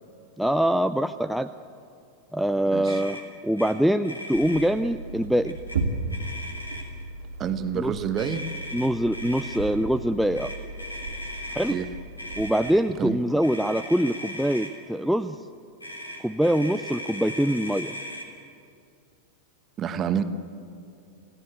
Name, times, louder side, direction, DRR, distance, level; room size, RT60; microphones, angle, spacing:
voice 1, 0.4-1.5 2.3-3.2 3.4-5.6 7.7-7.9 8.7-10.5 11.5-11.8 12.4-15.4 16.2-18.0, equal, ahead, 8 dB, 0.5 m, -24 dB
voice 2, 2.7-3.0 7.4-8.5 11.7-11.9 13.0-13.2 19.8-20.2, right 8 dB, 30° right, 10 dB, 1.3 m, -28 dB
Motor vehicle (road), 2.9-3.2 3.6-3.7 4.0-4.7 5.4-5.8 6.1-7.0 8.2-9.6 10.3-11.8 12.2-12.7 13.4-14.7 15.8-18.3, left 1 dB, 80° left, 3.3 m, -38 dB
sound 1, 4.3-13.0, right 3 dB, 65° right, 2.3 m, -35 dB
28.0 x 17.0 x 8.2 m, 2.5 s
figure-of-eight pair, 90°, 0 cm